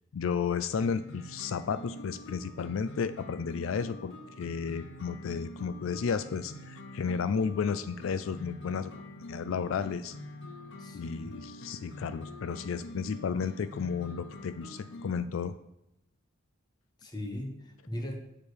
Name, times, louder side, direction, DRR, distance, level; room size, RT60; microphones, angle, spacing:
voice 1, 0.1-8.9 9.3-10.1 10.9-15.5, left 6 dB, 85° left, 12 dB, 0.4 m, -33 dB
sound 1, 0.8-15.2, left 1 dB, 65° left, 0.8 m, -45 dB
voice 2, 10.8-11.3 17.0-18.2, left 1 dB, 20° left, 3 dB, 1.3 m, -39 dB
7.1 x 5.1 x 6.4 m, 0.85 s
head